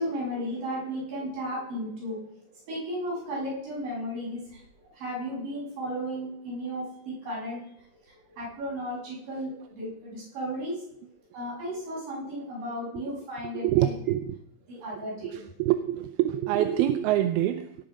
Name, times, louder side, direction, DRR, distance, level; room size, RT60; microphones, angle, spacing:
voice 1, 0.0-2.2 2.6-7.6 8.0-10.8 11.3-13.9 14.7-15.4, equal, 60° right, -6 dB, 8.4 m, -34 dB
voice 2, 13.5-14.4 15.2-17.8, right 13 dB, 85° right, 9 dB, 2.6 m, -26 dB
18.5 x 7.6 x 5.3 m, 0.74 s
omnidirectional pair, 4.4 m